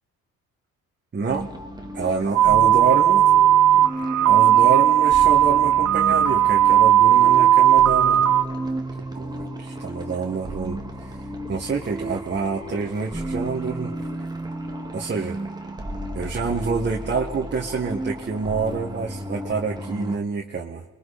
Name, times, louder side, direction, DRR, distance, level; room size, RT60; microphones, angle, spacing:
voice 1, 1.1-1.5 1.9-3.3 4.3-8.2 9.1-11.2 11.5-13.9 14.9-15.4 16.1-20.8, right 5 dB, 35° right, -1 dB, 1.9 m, -27 dB
sound 1, 1.3-20.2, right 1 dB, 15° right, 2.1 m, -33 dB
sound 2, 2.3-8.4, right 11 dB, 75° right, 1.5 m, -16 dB
29.0 x 22.0 x 4.4 m, 1.1 s
cardioid pair, 90°, 30 cm